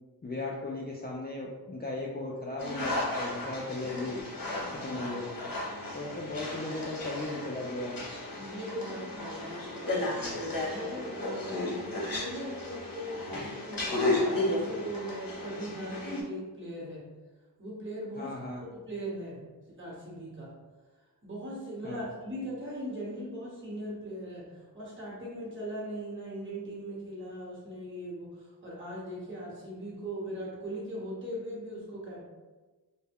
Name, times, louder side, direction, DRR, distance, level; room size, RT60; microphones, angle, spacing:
voice 1, 0.2-4.2 4.7-5.5 5.9-8.0 13.3-13.5 18.2-18.6 21.8-22.0, left 2 dB, 25° left, -4 dB, 0.4 m, -37 dB
sound 1, 2.6-16.2, left 2 dB, 55° left, 0.8 m, -34 dB
voice 2, 8.3-13.9 14.3-17.0 17.6-18.3 18.7-20.5 21.2-32.3, equal, 30° right, -6 dB, 1.2 m, -40 dB
2.2 x 2.1 x 3.4 m, 1.3 s
wide cardioid pair, 45°, 40 cm